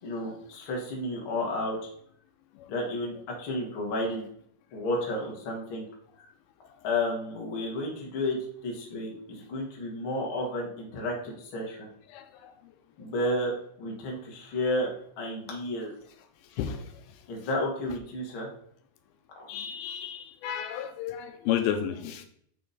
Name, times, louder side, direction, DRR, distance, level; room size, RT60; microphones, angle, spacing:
voice 1, 0.0-1.9 2.7-4.2 4.7-5.9 6.2-6.3 6.8-8.4 8.6-11.9 13.0-13.5 13.8-14.9 15.2-16.0 17.3-18.5 19.4-19.5, left 1 dB, 45° left, -1 dB, 2.1 m, -32 dB
voice 2, 12.1-12.5 14.1-14.2 16.5-17.2 19.5-22.2, left 9 dB, 85° left, 7 dB, 2.5 m, -33 dB
6.9 x 6.2 x 4.1 m, 0.64 s
omnidirectional pair, 4.3 m